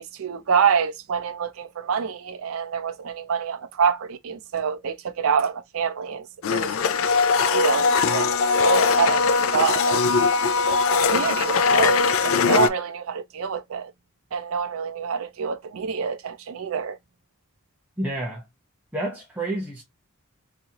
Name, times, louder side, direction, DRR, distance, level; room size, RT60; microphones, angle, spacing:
voice 1, 0.0-6.7 7.4-8.4 8.6-10.0 10.9-13.9 14.3-17.0, right 6 dB, 70° right, 0.4 m, -26 dB
Domestic sounds home sounds, 6.4-12.7, left 4 dB, 65° left, 0.4 m, -20 dB
voice 2, 18.0-18.4 18.9-19.8, right 1 dB, 5° right, 0.8 m, -29 dB
3.7 x 3.0 x 2.8 m
head